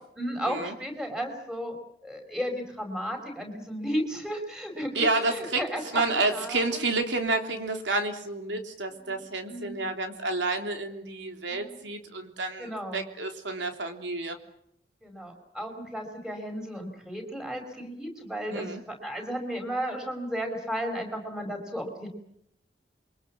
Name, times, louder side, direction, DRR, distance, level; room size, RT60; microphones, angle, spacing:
voice 1, 0.2-1.8 2.0-6.8 9.0-9.8 11.5-11.8 12.6-13.1 15.0-22.1, equal, 5° right, 3 dB, 4.7 m, -34 dB
voice 2, 4.9-5.6 5.9-14.4 18.5-18.8, right 3 dB, 85° right, 4 dB, 3.2 m, -29 dB
28.5 x 23.5 x 7.4 m, 0.76 s
head